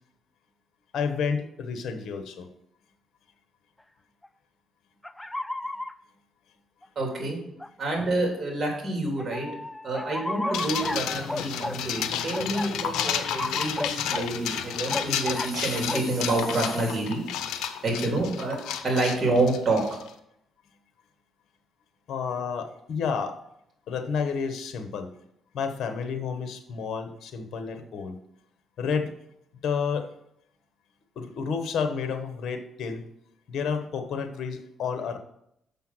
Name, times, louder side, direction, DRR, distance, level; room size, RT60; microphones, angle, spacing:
voice 1, 0.9-2.5 22.1-23.4 23.9-25.1 25.5-28.2 28.8-29.2 29.6-30.1 31.2-33.0 33.5-35.2, left 6 dB, 70° left, 8 dB, 1.1 m, -30 dB
sound 1, 4.2-4.3 5.0-5.9 6.8-6.9 7.6-7.7 9.2-11.8 12.3-14.3 14.9-15.5 15.9-16.1, left 1 dB, 10° left, 0.3 m, -33 dB
voice 2, 6.9-7.4 7.8-9.5 9.8-17.2 17.8-18.6 18.8-20.0, right 2 dB, 35° right, 1 dB, 3.3 m, -28 dB
sound 2, 10.5-20.1, left 9 dB, 90° left, 0.6 m, -32 dB
6.8 x 5.6 x 6.1 m, 0.77 s
cardioid pair, 90°, 0 cm